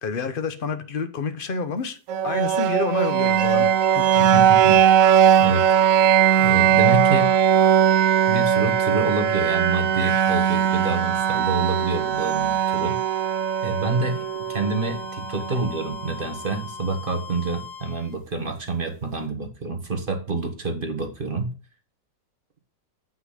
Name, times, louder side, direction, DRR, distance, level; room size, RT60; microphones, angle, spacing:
voice 1, 0.0-2.0 2.2-3.7 3.9-4.0, left 4 dB, 45° left, 0.7 m, -28 dB
sound 1, 2.1-16.0, right 9 dB, 90° right, 0.7 m, -20 dB
sound 2, 2.8-18.1, left 7 dB, 80° left, 2.3 m, -39 dB
voice 2, 4.2-4.8 5.4-5.6 6.4-7.3 8.3-13.0 13.6-21.5, right 3 dB, 30° right, 1.4 m, -27 dB
8.0 x 5.8 x 5.0 m
omnidirectional pair, 2.0 m